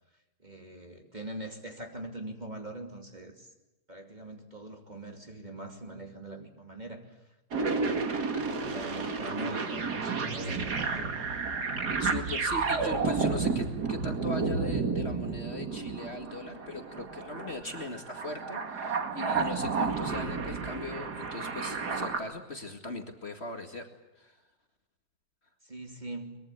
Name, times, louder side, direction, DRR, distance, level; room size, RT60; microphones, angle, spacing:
voice 1, 0.4-3.5 3.9-11.2 25.6-26.4, right 1 dB, 25° right, 3 dB, 2.8 m, -43 dB
sound 1, 7.5-22.2, right 4 dB, 65° right, 2.5 m, -31 dB
voice 2, 12.0-23.9 24.2-24.4, left 2 dB, 35° left, 4 dB, 2.3 m, -39 dB
23.5 x 22.0 x 8.3 m, 1.0 s
omnidirectional pair, 1.9 m